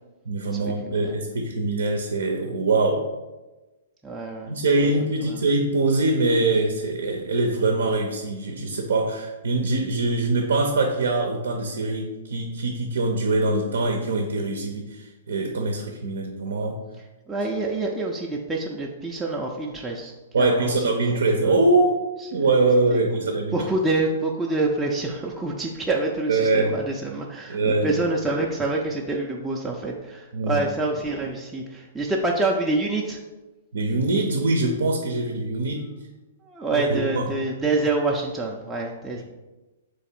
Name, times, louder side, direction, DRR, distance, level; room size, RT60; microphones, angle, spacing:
voice 1, 0.3-3.0 4.5-16.8 20.3-22.0 22.3-23.6 26.3-26.7 27.5-28.0 30.3-30.6 33.7-35.9 36.7-37.3, right 2 dB, 70° right, 3 dB, 0.6 m, -23 dB
voice 2, 0.9-1.2 4.0-4.5 4.8-4.9 5.3-5.4 17.3-20.7 21.0-21.6 22.4-22.6 22.9-23.0 23.5-33.2 36.5-39.2, right 2 dB, 10° right, -2 dB, 0.5 m, -27 dB
3.6 x 3.1 x 4.3 m, 1.1 s
figure-of-eight pair, 115°, 0 cm